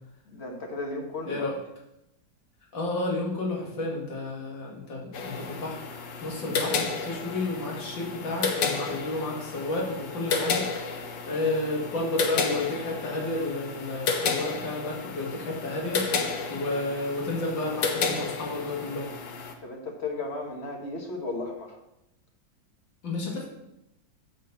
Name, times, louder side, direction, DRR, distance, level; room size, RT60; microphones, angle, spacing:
voice 1, 0.3-1.5 6.4-6.5 19.6-21.8, left 2 dB, 40° left, 1 dB, 1.5 m, -35 dB
voice 2, 1.3-1.6 2.7-5.8 6.2-19.1 23.0-23.5, left 2 dB, 80° left, -3 dB, 2.7 m, -31 dB
sound 1, 5.1-19.5, left 5 dB, 65° left, 1.5 m, -32 dB
9.1 x 4.2 x 6.9 m, 0.85 s
omnidirectional pair, 2.0 m